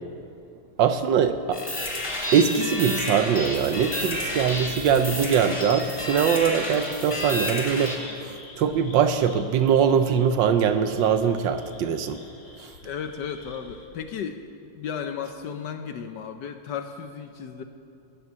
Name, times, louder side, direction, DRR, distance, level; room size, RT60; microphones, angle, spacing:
voice 1, 0.8-1.6 2.3-8.1 8.6-12.2, right 7 dB, 70° right, 9 dB, 1.2 m, -22 dB
sound 1, 1.5-8.0, left 1 dB, 15° left, 2.6 m, -31 dB
sound 2, 1.8-13.8, left 3 dB, 90° left, 2.5 m, -46 dB
voice 2, 12.8-17.6, left 7 dB, 70° left, 7 dB, 1.1 m, -34 dB
17.0 x 10.0 x 7.3 m, 2.7 s
omnidirectional pair, 2.3 m